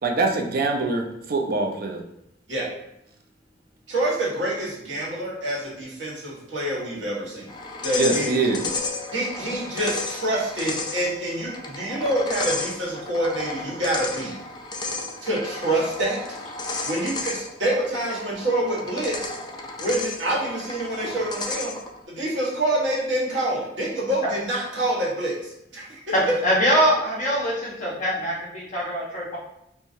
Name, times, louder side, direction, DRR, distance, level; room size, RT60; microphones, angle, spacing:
voice 1, 0.0-2.0 8.0-8.6, right 3 dB, 55° right, 3 dB, 0.6 m, -24 dB
voice 2, 3.9-7.5 7.8-8.3 9.1-14.4 15.2-16.2 16.8-19.3 19.8-21.7 22.1-26.0, right 1 dB, 80° right, -6 dB, 1.4 m, -26 dB
sound 1, 7.5-22.0, left 3 dB, 25° left, 0.4 m, -33 dB
voice 3, 26.1-29.4, equal, 45° left, -5 dB, 0.9 m, -23 dB
4.6 x 2.2 x 2.7 m, 0.81 s
head